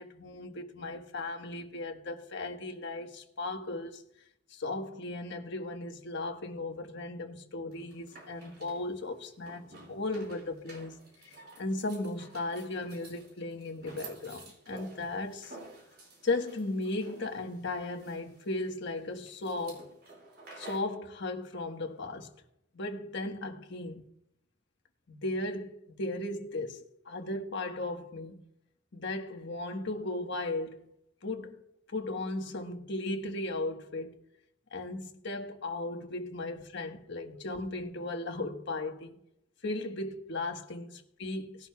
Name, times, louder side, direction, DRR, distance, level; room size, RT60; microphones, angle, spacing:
voice 1, 0.0-4.0 4.5-11.0 11.6-15.6 16.2-19.9 20.6-22.3 22.7-24.0 25.2-28.4 28.9-30.8 31.2-31.5 31.9-34.1 34.7-39.1 39.6-41.7, left 2 dB, 60° left, 1.4 m, -36 dB
sound 1, 7.7-21.0, right 2 dB, 50° right, 5.1 m, -51 dB
19.0 x 11.0 x 2.3 m
head